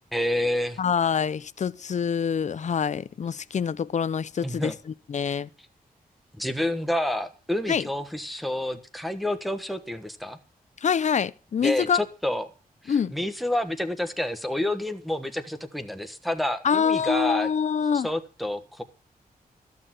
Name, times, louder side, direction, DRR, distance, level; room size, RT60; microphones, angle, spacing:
voice 1, 0.1-0.8 4.4-4.7 6.3-10.4 11.6-12.5 12.8-17.5 17.9-18.8, left 1 dB, ahead, 1.3 m, -29 dB
voice 2, 0.8-4.7 5.1-5.5 7.7-7.8 10.8-12.0 12.9-13.1 16.6-18.1, left 7 dB, 50° left, 0.6 m, -25 dB
14.5 x 6.7 x 7.5 m
wide cardioid pair, 145°, 15 cm